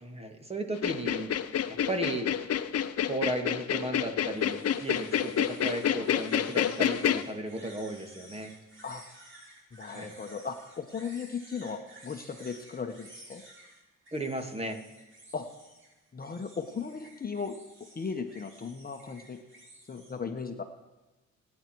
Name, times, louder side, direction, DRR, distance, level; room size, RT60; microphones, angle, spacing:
voice 1, 0.0-1.3 1.9-2.3 3.1-8.5 9.9-10.1 14.1-14.8, right 1 dB, 20° right, 5 dB, 2.4 m, -35 dB
sound 1, 0.7-7.2, left 9 dB, 55° left, 1.0 m, -28 dB
sound 2, 4.2-20.1, right 1 dB, 40° right, 5.8 m, -54 dB
voice 2, 9.7-13.4 15.3-15.5 16.1-17.5 17.9-19.4 19.9-20.6, left 5 dB, 30° left, 5 dB, 1.3 m, -37 dB
25.0 x 9.8 x 4.7 m, 1.1 s
cardioid pair, 90°, 30 cm